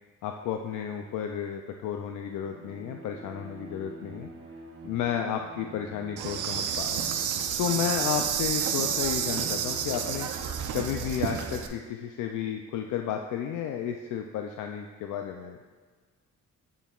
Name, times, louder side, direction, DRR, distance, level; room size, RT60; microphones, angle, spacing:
voice 1, 0.2-4.3 4.8-7.1 7.6-10.3 10.7-15.6, left 9 dB, 90° left, 4 dB, 0.5 m, -32 dB
Bowed string instrument, 2.3-10.8, right 3 dB, 50° right, 0.9 m, -46 dB
Insect, 6.2-11.7, right 8 dB, 80° right, 0.6 m, -30 dB
8.0 x 7.0 x 2.4 m, 1.5 s
cardioid pair, 115°, 30 cm